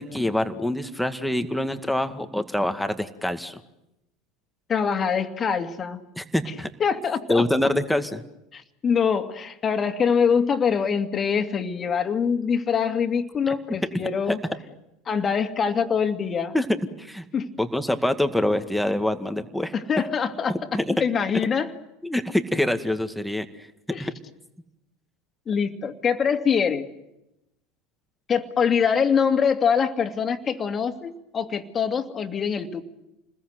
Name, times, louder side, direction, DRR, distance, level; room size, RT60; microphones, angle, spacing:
voice 1, 0.0-3.6 6.2-6.7 7.3-8.2 13.5-13.6 13.9-14.4 16.5-17.2 17.6-19.7 20.7-20.9 22.0-23.5 24.0-24.1, left 1 dB, ahead, 8 dB, 2.0 m, -25 dB
voice 2, 4.7-6.0 6.8-7.4 8.5-14.4 15.1-16.6 17.3-17.5 19.7-21.7 23.9-24.1 25.5-26.9 28.3-32.8, left 6 dB, 30° left, 6 dB, 2.4 m, -24 dB
29.0 x 21.0 x 8.1 m, 0.88 s
hypercardioid pair, 75°, 0 cm